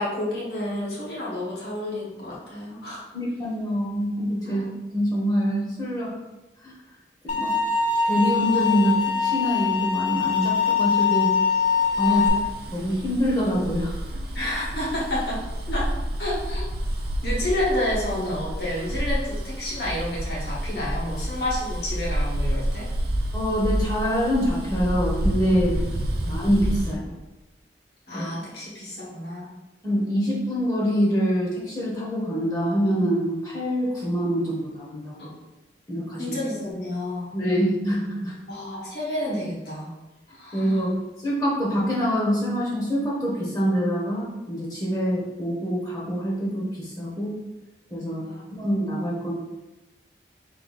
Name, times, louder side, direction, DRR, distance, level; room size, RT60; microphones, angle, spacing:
voice 1, 0.0-3.0 4.4-4.7 12.0-12.5 14.3-15.4 15.7-15.9 16.2-16.6 17.2-22.9 25.7-25.9 26.2-26.4 28.1-29.5 36.2-37.3 38.5-39.9 40.3-40.9 48.2-48.5, left 1 dB, 65° left, -5 dB, 1.4 m, -30 dB
voice 2, 3.1-4.6 4.9-6.1 6.6-6.7 7.3-7.5 8.0-11.3 12.0-12.2 12.7-14.0 23.3-25.8 26.3-27.1 28.1-28.2 29.8-35.3 35.9-36.4 37.3-38.3 40.5-41.0 41.2-47.4 47.9-48.2 48.5-49.3, equal, 20° left, -5 dB, 0.9 m, -25 dB
sound 1, 7.3-12.3, left 6 dB, 45° left, 0.6 m, -23 dB
Bus, 11.8-26.9, right 1 dB, 60° right, 0.5 m, -29 dB
3.9 x 2.6 x 4.0 m, 1.0 s
head